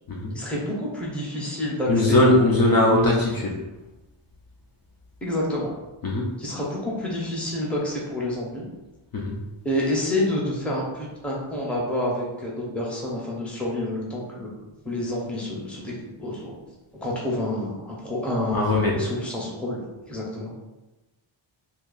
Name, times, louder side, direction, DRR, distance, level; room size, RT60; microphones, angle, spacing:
voice 1, 0.3-3.2 5.2-5.7 6.4-8.6 9.6-14.5 14.8-16.6 17.0-19.8 20.1-20.5, left 1 dB, ahead, -5 dB, 0.7 m, -28 dB
voice 2, 1.9-3.6 6.0-6.3 9.1-9.4 18.5-19.0, left 2 dB, 45° left, -3 dB, 0.5 m, -20 dB
2.8 x 2.6 x 3.9 m, 1.1 s
wide cardioid pair, 170°, 50 cm